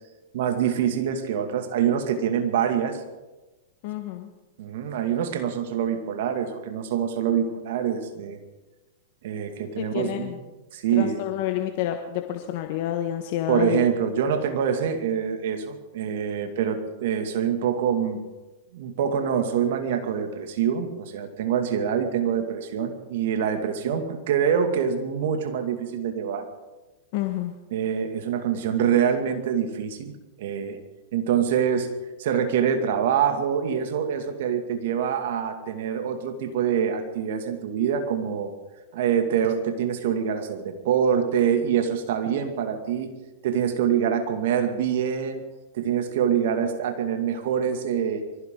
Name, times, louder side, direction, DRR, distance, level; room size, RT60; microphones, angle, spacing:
voice 1, 0.3-3.0 4.6-8.4 9.2-10.4 10.7-11.2 13.5-18.3 18.7-26.5 27.7-30.8 31.1-31.9 32.2-38.5 38.9-43.1 43.4-45.4 45.7-48.2, right 8 dB, 65° right, 6 dB, 2.3 m, -25 dB
voice 2, 3.8-4.3 9.8-10.4 10.9-13.8 27.1-27.5, left 12 dB, 55° left, 5 dB, 1.3 m, -28 dB
24.0 x 15.5 x 3.9 m, 1.1 s
hypercardioid pair, 110°, 0 cm